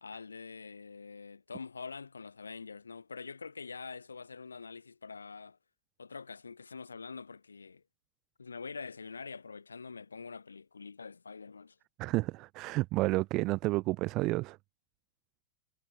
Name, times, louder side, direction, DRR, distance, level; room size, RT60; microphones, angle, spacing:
voice 1, 0.0-5.6 6.0-7.8 8.4-11.8, left 5 dB, 75° left, 1.5 m, -45 dB
voice 2, 12.0-14.6, right 20 dB, 40° right, 0.9 m, -30 dB
figure-of-eight pair, 90°, 0 cm